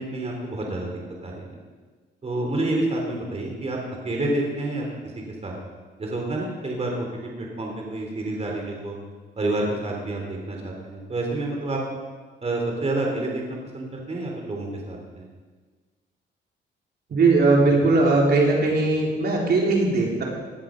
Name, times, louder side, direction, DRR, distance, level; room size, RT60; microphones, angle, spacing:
voice 1, 0.0-1.5 2.2-3.8 4.0-4.9 5.4-5.5 6.0-9.0 9.4-11.8 12.4-15.2, right 2 dB, 30° right, 0 dB, 3.6 m, -28 dB
voice 2, 17.1-20.2, right 3 dB, 55° right, -2 dB, 3.8 m, -19 dB
18.5 x 11.5 x 5.3 m, 1.4 s
cardioid pair, 90°, 20 cm